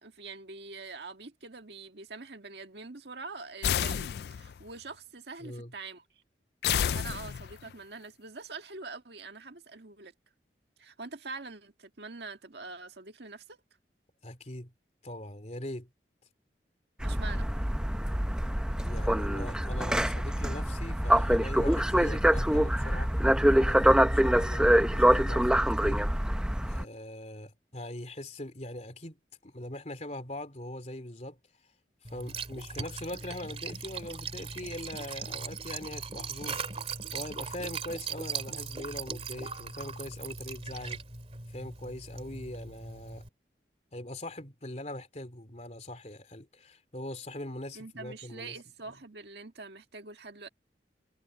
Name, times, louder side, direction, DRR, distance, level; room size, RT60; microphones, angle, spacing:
voice 1, 0.0-6.0 6.7-10.1 10.8-13.6 17.0-17.5 47.7-50.5, right 3 dB, 70° right, 1.7 m, -44 dB
sound 1, 3.6-4.6 6.6-7.7, left 9 dB, 60° left, 0.3 m, -30 dB
voice 2, 5.4-5.7 14.2-14.7 15.0-15.9 18.8-23.1 23.6-26.0 26.6-31.4 32.1-36.9 37.1-41.0 41.5-43.3 43.9-48.6, left 1 dB, 40° left, 3.2 m, -41 dB
sound 2, 17.0-26.8, equal, 5° right, 0.7 m, -25 dB
Liquid, 32.0-43.3, right 5 dB, 35° right, 2.6 m, -39 dB
head